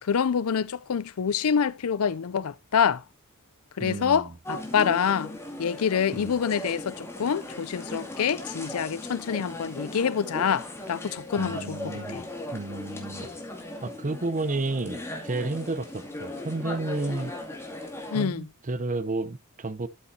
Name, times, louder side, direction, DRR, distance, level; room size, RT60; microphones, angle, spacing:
voice 1, 0.0-3.0 3.8-5.3 5.6-12.2 18.1-18.5, left 7 dB, 70° left, 0.5 m, -26 dB
voice 2, 3.8-4.3 6.1-6.4 11.4-12.2 12.5-13.3 13.8-17.3 17.8-17.9 18.1-19.9, right 2 dB, 35° right, 0.7 m, -31 dB
sound 1, 4.4-18.3, left 1 dB, 10° left, 2.3 m, -38 dB
12.5 x 7.3 x 2.7 m
head